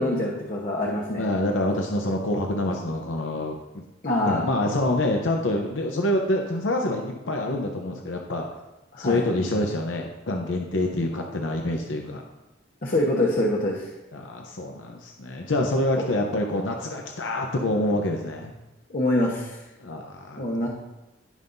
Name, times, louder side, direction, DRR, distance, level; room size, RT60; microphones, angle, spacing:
voice 1, 0.0-1.3 4.0-4.5 8.9-9.2 12.8-13.9 18.9-19.6 20.4-20.7, left 1 dB, 50° left, -3 dB, 1.1 m, -25 dB
voice 2, 1.2-3.6 4.2-8.5 9.0-12.2 14.1-18.5 19.8-20.4, left 1 dB, 75° left, 2 dB, 0.8 m, -26 dB
16.0 x 5.5 x 2.7 m, 1.0 s
head